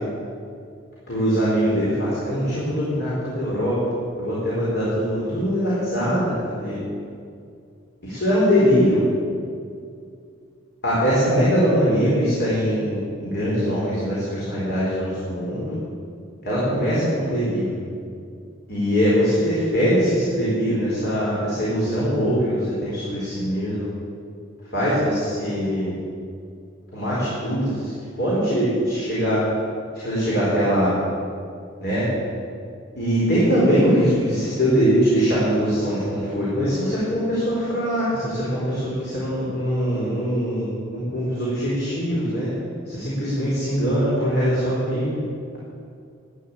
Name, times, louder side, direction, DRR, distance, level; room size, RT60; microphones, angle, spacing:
voice 1, 1.1-3.8 4.2-6.8 8.1-9.0 10.8-15.8 16.4-17.7 18.7-23.9 24.7-25.9 26.9-27.9 28.2-29.4 29.9-30.9 31.8-32.1 33.0-40.6 40.9-42.5 42.9-45.1, equal, 55° left, -8 dB, 4.3 m, -22 dB
13.0 x 9.3 x 8.9 m, 2.4 s
head